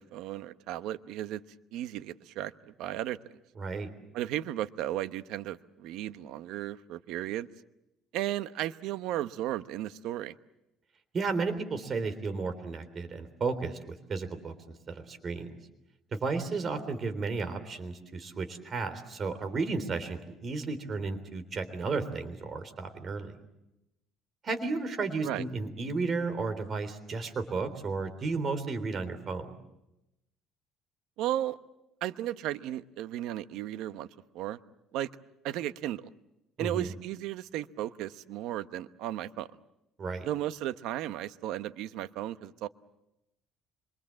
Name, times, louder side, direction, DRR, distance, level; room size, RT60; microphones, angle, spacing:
voice 1, 0.0-1.4 1.7-3.2 4.1-7.5 8.1-10.3 25.2-25.4 31.2-31.6 32.0-34.1 34.3-34.6 34.9-35.1 35.4-36.1 36.6-39.5 40.2-42.7, right 13 dB, 75° right, 12 dB, 1.0 m, -35 dB
voice 2, 3.6-3.9 11.1-14.5 14.9-15.6 16.1-23.4 24.4-29.5 36.6-36.9 40.0-40.3, right 4 dB, 35° right, 9 dB, 3.4 m, -33 dB
26.0 x 24.5 x 7.6 m, 0.88 s
cardioid pair, 125°, 0 cm